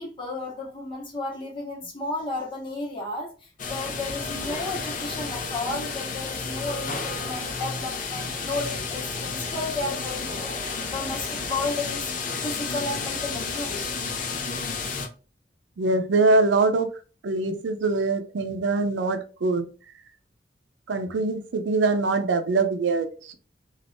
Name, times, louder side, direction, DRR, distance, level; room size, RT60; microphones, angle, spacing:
voice 1, 0.0-12.1 12.4-13.9, left 2 dB, 30° left, 1.1 m, -33 dB
sound 1, 3.6-15.1, left 4 dB, 45° left, 0.5 m, -31 dB
voice 2, 15.8-16.9 17.2-19.7 20.9-23.3, right 3 dB, 80° right, 0.5 m, -23 dB
2.5 x 2.4 x 3.4 m
head